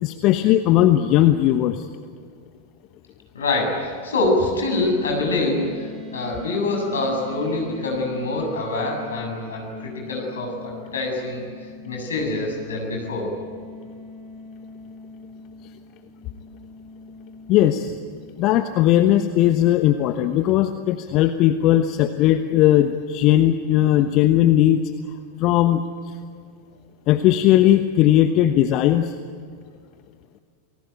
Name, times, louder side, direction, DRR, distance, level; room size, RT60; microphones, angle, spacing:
voice 1, 0.0-1.9 17.5-18.0 18.4-24.8 25.4-25.8 27.1-29.1, left 13 dB, 40° left, 9 dB, 1.1 m, -18 dB
voice 2, 3.3-11.4 11.8-13.3, left 2 dB, 70° left, 1 dB, 7.7 m, -25 dB
sound 1, 4.7-18.5, left 3 dB, 10° right, 6.9 m, -41 dB
29.0 x 19.5 x 9.2 m, 2.1 s
figure-of-eight pair, 90°, 0 cm